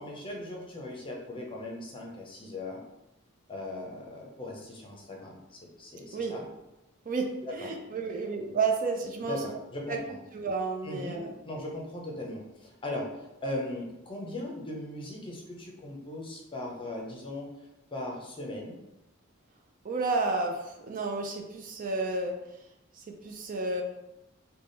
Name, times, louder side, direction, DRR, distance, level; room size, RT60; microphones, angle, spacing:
voice 1, 0.0-2.8 3.5-6.5 7.4-7.7 9.3-10.2 10.8-13.1 13.4-17.5 17.9-18.8, left 1 dB, 25° left, -1 dB, 0.7 m, -38 dB
voice 2, 7.1-9.6 9.9-10.0 10.3-11.3 19.8-22.3 22.9-23.8, right 3 dB, 40° right, 3 dB, 0.4 m, -31 dB
3.4 x 2.3 x 3.9 m, 0.93 s
head